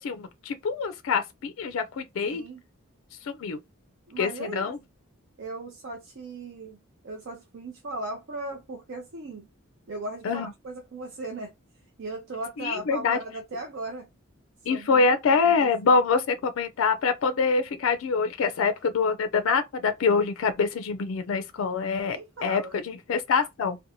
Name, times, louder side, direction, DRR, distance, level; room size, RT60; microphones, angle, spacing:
voice 1, 0.0-2.4 3.2-3.6 4.2-4.8 10.2-10.5 12.6-13.2 14.7-23.8, left 5 dB, 65° left, 0.4 m, -25 dB
voice 2, 2.2-2.6 4.1-4.7 5.4-6.8 7.0-9.5 9.9-11.5 12.0-14.1 14.7-15.0 15.4-16.0 22.1-22.8, right 2 dB, 60° right, 0.6 m, -37 dB
2.6 x 2.1 x 2.8 m
head